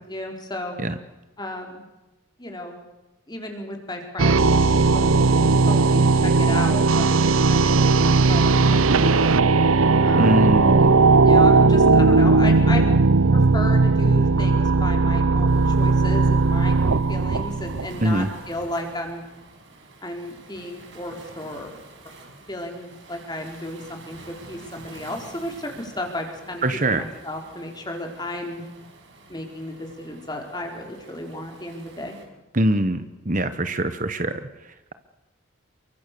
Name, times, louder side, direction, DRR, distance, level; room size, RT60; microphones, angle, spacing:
voice 1, 0.1-0.7 1.4-1.8 2.4-2.8 3.3-5.3 5.6-7.1 7.5-9.4 10.0-10.7 11.2-12.9 13.3-19.2 20.0-21.7 22.5-24.2 24.5-26.6 26.9-28.6 29.3-32.1, left 1 dB, 20° left, 3 dB, 4.6 m, -34 dB
Special Fx, 4.2-18.3, right 3 dB, 80° right, 0.8 m, -17 dB
voice 2, 10.1-10.9 18.0-18.3 26.6-27.1 32.5-34.9, right 1 dB, 35° right, 10 dB, 1.2 m, -23 dB
Waves surf, 15.5-32.2, right 2 dB, 60° right, 5.8 m, -48 dB
29.5 x 24.0 x 7.0 m, 1.1 s
head